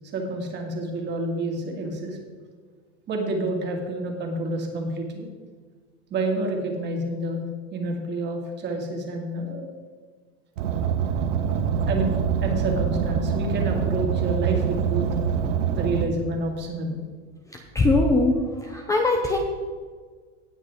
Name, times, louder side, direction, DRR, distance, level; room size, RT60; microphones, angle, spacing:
voice 1, 0.1-2.2 3.1-5.3 6.1-7.4 7.7-9.7 11.9-15.1 15.7-17.0, right 2 dB, 30° right, 2 dB, 2.2 m, -28 dB
Car, 10.6-16.1, right 7 dB, 90° right, 1.2 m, -25 dB
voice 2, 17.7-18.3 18.6-19.4, left 2 dB, 10° left, 2 dB, 0.7 m, -20 dB
18.0 x 6.5 x 3.7 m, 1.5 s
supercardioid pair, 150°, 37 cm